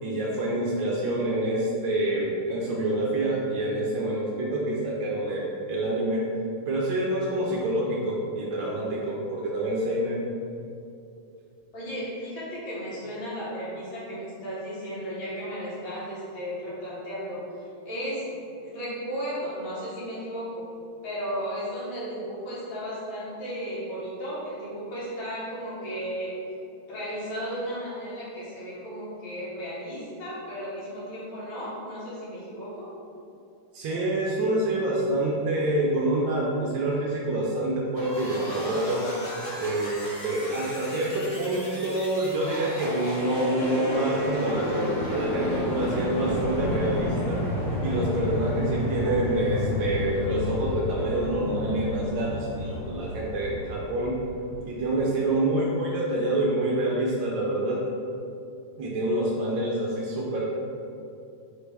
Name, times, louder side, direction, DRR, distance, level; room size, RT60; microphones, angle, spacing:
voice 1, 0.0-6.2 6.7-10.2 33.7-39.0 39.6-47.4 47.8-54.2 54.6-57.8 58.8-60.6, right 1 dB, 75° right, -4 dB, 1.3 m, -27 dB
voice 2, 11.7-18.2 18.6-20.6 21.0-26.3 26.9-32.9, equal, 70° left, -10 dB, 2.0 m, -34 dB
sound 1, 37.9-54.6, left 1 dB, 20° left, 1.2 m, -32 dB
sound 2, 47.8-55.5, left 1 dB, 50° right, 1.2 m, -41 dB
4.1 x 3.3 x 3.2 m, 2.6 s
omnidirectional pair, 2.3 m